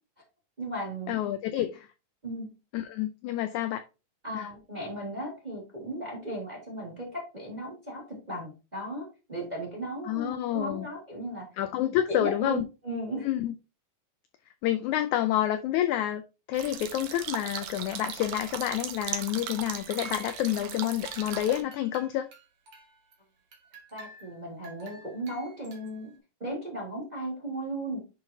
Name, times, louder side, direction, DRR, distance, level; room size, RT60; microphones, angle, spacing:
voice 1, 0.6-1.1 2.2-2.5 4.2-11.5 12.1-13.3 23.9-26.1 26.4-28.0, right 1 dB, 15° right, 1.7 m, -36 dB
voice 2, 1.1-1.9 2.7-3.8 4.3-4.5 10.0-10.9 11.6-12.6 13.2-13.5 14.6-16.2 16.5-22.3, left 12 dB, 85° left, 1.7 m, -28 dB
sound 1, 16.5-21.6, right 9 dB, 70° right, 2.1 m, -38 dB
sound 2, 19.4-20.7 21.0-23.1 23.5-26.2, right 4 dB, 50° right, 2.0 m, -50 dB
10.5 x 3.9 x 2.8 m
omnidirectional pair, 3.9 m